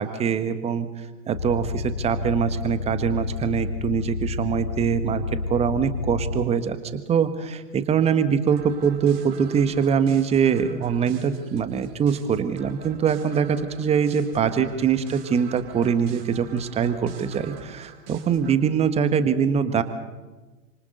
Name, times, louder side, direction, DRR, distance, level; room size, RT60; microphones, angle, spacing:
voice 1, 0.0-19.8, right 7 dB, 15° right, 11 dB, 1.5 m, -23 dB
sound 1, 1.3-6.5, left 4 dB, 75° left, 1.1 m, -30 dB
sound 2, 8.5-18.6, right 5 dB, 45° right, 5.5 m, -45 dB
29.0 x 26.5 x 4.0 m, 1.2 s
figure-of-eight pair, 110°, 41 cm